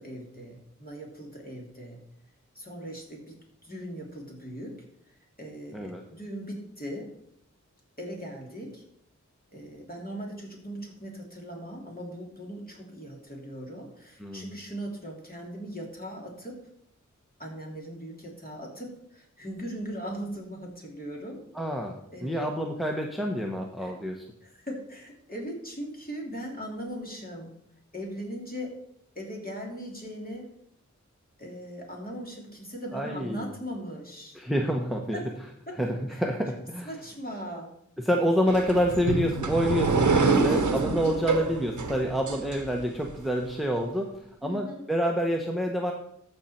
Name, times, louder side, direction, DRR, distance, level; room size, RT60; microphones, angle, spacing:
voice 1, 0.0-2.0 2.5-3.4 3.6-4.8 5.1-7.1 8.0-8.8 9.5-16.6 17.4-21.4 22.1-22.4 23.8-23.9 24.4-27.5 27.9-28.8 29.1-30.5 31.4-34.4 35.1-35.2 35.7-35.8 36.1-36.2 36.8-37.7 40.3-40.7 44.4-44.8, equal, 30° left, -2 dB, 3.2 m, -39 dB
voice 2, 21.5-21.9 22.2-24.2 32.9-33.5 34.3-35.2 35.8-36.9 38.0-45.9, equal, ahead, 2 dB, 1.1 m, -28 dB
sound 1, 38.5-43.1, right 4 dB, 75° right, 0.9 m, -26 dB
14.0 x 5.4 x 4.5 m, 0.73 s
wide cardioid pair, 45°, 30 cm